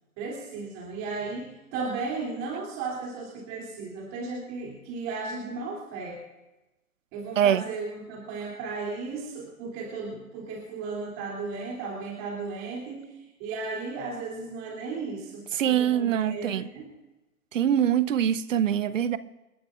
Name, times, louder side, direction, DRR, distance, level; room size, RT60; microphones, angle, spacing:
voice 1, 0.2-6.2 7.1-16.9, right 4 dB, 30° right, 3.0 m, -35 dB
voice 2, 15.6-16.6 17.5-19.2, right 9 dB, 60° right, 0.8 m, -23 dB
29.0 x 11.5 x 2.5 m
figure-of-eight pair, 125°, 44 cm